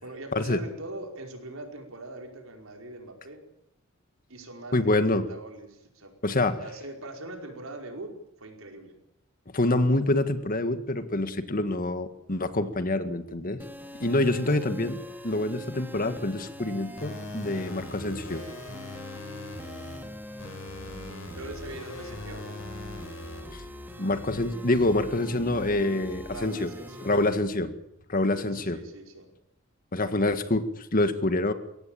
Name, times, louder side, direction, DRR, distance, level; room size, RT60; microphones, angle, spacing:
voice 1, 0.0-3.4 4.3-6.1 6.6-9.0 21.3-22.6 26.2-27.3 28.1-29.3, right 1 dB, 85° right, 3 dB, 5.0 m, -42 dB
voice 2, 4.7-5.2 6.2-6.6 9.5-13.6 14.0-18.4 23.5-23.6 24.0-26.7 27.0-27.7 28.1-28.8 29.9-31.5, left 2 dB, 45° left, 10 dB, 1.8 m, -26 dB
sound 1, 13.6-27.3, equal, 10° right, 3.1 m, -42 dB
sound 2, 17.0-20.0 20.4-23.4, left 2 dB, 85° left, 5.9 m, -41 dB
23.0 x 17.0 x 8.9 m, 0.80 s
head